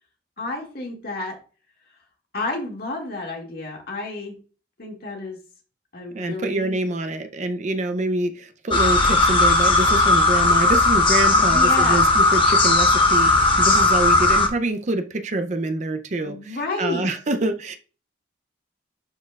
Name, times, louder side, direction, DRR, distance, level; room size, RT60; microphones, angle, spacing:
voice 1, 0.4-1.4 2.3-4.4 4.8-5.4 5.9-6.8 11.3-12.1 16.2-17.1, left 2 dB, 50° left, 2.0 m, -30 dB
voice 2, 6.1-17.8, right 2 dB, 40° right, 0.5 m, -26 dB
sound 1, 8.7-14.5, left 2 dB, 25° left, 1.0 m, -17 dB
11.0 x 4.3 x 2.3 m
head